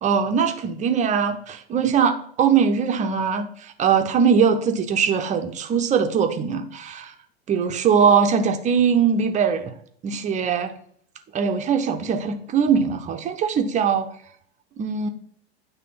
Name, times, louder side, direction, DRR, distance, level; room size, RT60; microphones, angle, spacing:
voice 1, 0.0-7.1 7.5-9.7 10.0-10.7 11.3-14.1 14.8-15.1, right 6 dB, 25° right, 6 dB, 0.7 m, -21 dB
9.2 x 3.4 x 5.7 m, 0.62 s
figure-of-eight pair, 85°, 32 cm